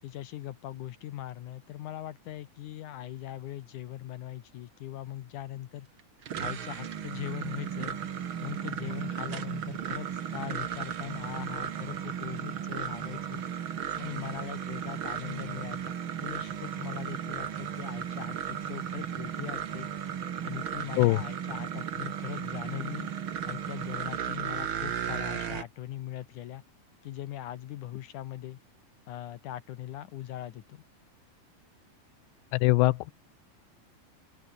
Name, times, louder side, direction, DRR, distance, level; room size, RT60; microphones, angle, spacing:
voice 1, 0.0-5.9 6.4-8.0 8.4-13.4 14.0-15.9 16.2-19.9 20.4-23.1 23.4-26.6 27.0-28.6 29.1-30.8, left 13 dB, 75° left, 1.9 m, -40 dB
sound 1, 6.0-25.6, right 8 dB, 80° right, 1.1 m, -35 dB
voice 2, 32.5-33.1, left 20 dB, 90° left, 3.0 m, -22 dB
open air
omnidirectional pair, 4.9 m